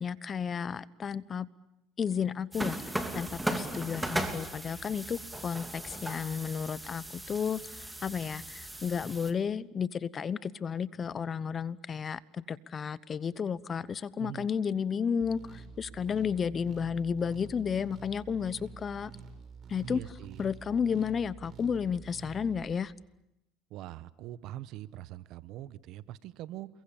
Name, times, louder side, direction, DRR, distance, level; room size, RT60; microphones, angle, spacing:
voice 1, 0.0-1.5 2.0-19.1 19.7-20.1 20.4-22.9, left 7 dB, 35° left, 19 dB, 0.9 m, -32 dB
sound 1, 2.5-9.3, right 1 dB, 5° right, 3.0 m, -37 dB
sound 2, 15.2-22.7, right 5 dB, 40° right, 6.1 m, -48 dB
voice 2, 19.8-20.4 23.7-26.7, right 13 dB, 65° right, 17 dB, 1.1 m, -43 dB
28.5 x 22.5 x 8.8 m, 0.85 s
supercardioid pair, 105°, 0 cm